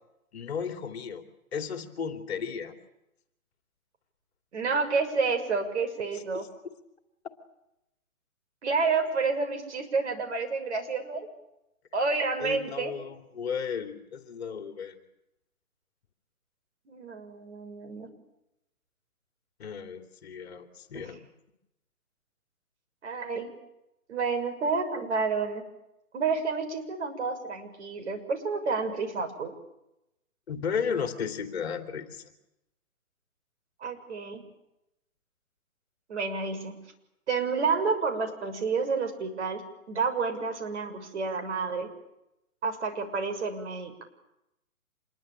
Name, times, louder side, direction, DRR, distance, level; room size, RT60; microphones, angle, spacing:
voice 1, 0.3-1.2 1.5-2.7 6.1-6.5 12.4-15.0 19.6-21.2 30.5-32.3, left 6 dB, 45° left, 7 dB, 2.9 m, -34 dB
voice 2, 4.5-6.4 8.6-11.3 11.9-12.9 16.9-18.1 23.0-23.5 24.1-25.6 26.1-29.5 33.8-34.4 36.1-36.8 37.3-39.6 39.9-41.9 42.6-44.0, right 4 dB, 50° right, 6 dB, 6.5 m, -29 dB
27.0 x 22.5 x 9.0 m, 0.87 s
hypercardioid pair, 160°, 43 cm